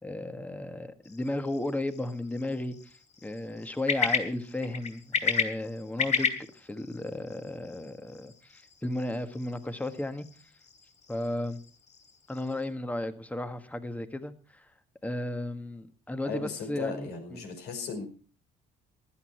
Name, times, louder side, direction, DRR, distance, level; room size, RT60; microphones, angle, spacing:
voice 1, 0.0-2.9 3.2-10.3 11.1-11.6 12.3-14.7 15.0-17.4, left 1 dB, 10° left, 10 dB, 1.5 m, -34 dB
sound 1, 1.0-12.7, left 6 dB, 45° left, 3.1 m, -35 dB
voice 2, 16.2-18.0, left 4 dB, 75° left, 5 dB, 5.2 m, -36 dB
15.5 x 12.5 x 4.5 m, 0.39 s
cardioid pair, 110°, 17 cm